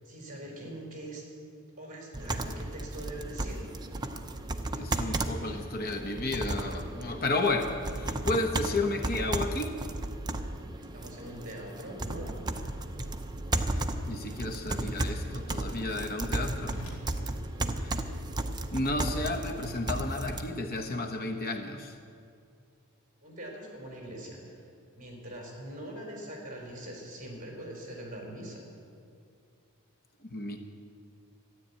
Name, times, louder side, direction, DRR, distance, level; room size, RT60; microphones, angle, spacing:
voice 1, 0.0-1.2 1.8-3.7 10.8-12.3 23.2-24.6 24.9-28.7, right 1 dB, 35° right, 0 dB, 4.3 m, -42 dB
sound 1, 2.1-20.4, right 2 dB, 20° right, 0.6 m, -34 dB
voice 2, 4.7-9.8 14.1-16.8 17.8-18.0 18.7-22.0 30.2-30.6, left 2 dB, 45° left, 4 dB, 1.0 m, -32 dB
Whoosh swoosh swish, 10.8-18.6, equal, 75° left, 3.1 m, -53 dB
13.0 x 10.5 x 8.6 m, 2.3 s
head